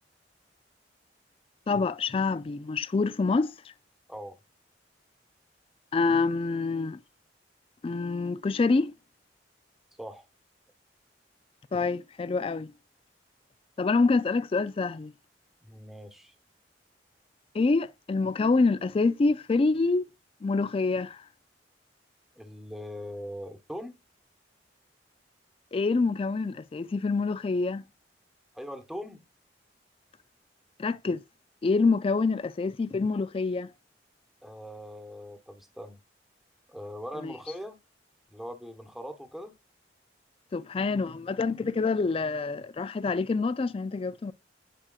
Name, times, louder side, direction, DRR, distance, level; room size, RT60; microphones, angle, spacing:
voice 1, 1.7-3.5 5.9-7.0 7.8-8.9 11.7-12.7 13.8-15.1 17.5-20.1 20.4-21.2 25.7-27.8 30.8-31.2 31.6-33.7 37.2-37.3 40.5-44.3, left 3 dB, 30° left, 0.3 m, -26 dB
voice 2, 15.6-16.3 22.4-24.0 28.5-29.2 34.4-36.0 36.7-37.8 38.3-39.5, equal, ahead, 1.1 m, -41 dB
9.9 x 4.9 x 2.3 m
head